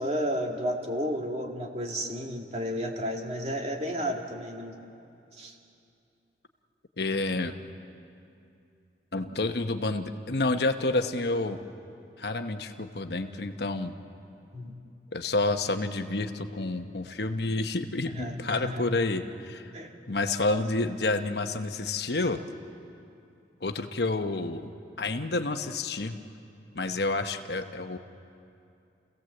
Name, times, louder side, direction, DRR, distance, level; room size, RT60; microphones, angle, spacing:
voice 1, 0.0-4.8 5.4-5.5 14.5-14.7 18.1-18.8 19.7-19.9, equal, 35° right, 1 dB, 2.2 m, -32 dB
voice 2, 7.0-7.5 9.1-11.6 12.2-13.9 15.1-19.7 20.1-22.4 23.6-24.7 25.0-26.2 26.7-28.0, left 2 dB, 65° left, 7 dB, 1.0 m, -29 dB
29.5 x 16.5 x 7.9 m, 2.7 s
head